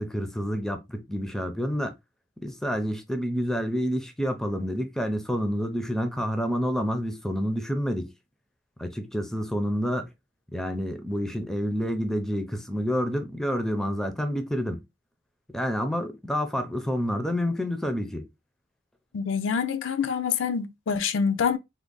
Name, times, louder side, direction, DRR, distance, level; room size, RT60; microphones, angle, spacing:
voice 1, 0.0-1.9 2.4-8.1 8.8-10.1 10.5-14.8 15.5-18.3, equal, ahead, 0.4 m, -28 dB
voice 2, 19.1-21.6, left 6 dB, 90° left, 0.4 m, -26 dB
3.5 x 2.0 x 3.7 m
head